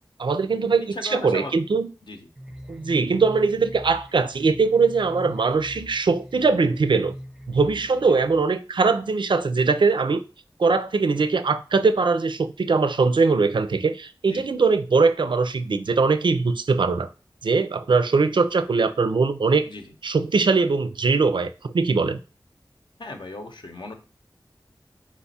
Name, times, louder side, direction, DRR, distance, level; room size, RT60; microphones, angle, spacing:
voice 1, 0.2-1.9 2.7-7.1 7.5-10.2 10.6-17.1 17.4-19.7 20.0-22.2, right 4 dB, 70° right, 0.4 m, -21 dB
voice 2, 0.9-1.6 2.0-2.3 8.0-8.2 14.3-14.5 19.6-20.0 23.0-23.9, left 2 dB, 65° left, 0.8 m, -37 dB
sound 1, 2.4-8.4, equal, 5° right, 0.5 m, -41 dB
4.3 x 2.3 x 4.0 m
wide cardioid pair, 55°, 8 cm